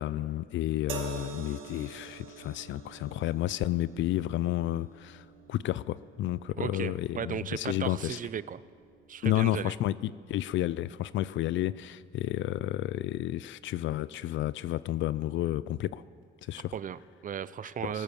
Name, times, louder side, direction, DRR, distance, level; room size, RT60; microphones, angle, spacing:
voice 1, 0.0-8.2 9.2-16.0 16.4-16.7 17.8-18.0, left 14 dB, 75° left, 18 dB, 0.4 m, -31 dB
sound 1, 0.9-14.2 15.2-15.4, right 7 dB, 90° right, 1.5 m, -48 dB
voice 2, 6.6-8.6 9.1-9.7 16.7-18.0, right 8 dB, 40° right, 17 dB, 0.5 m, -36 dB
19.5 x 9.0 x 7.0 m, 2.3 s
cardioid pair, 90°, 20 cm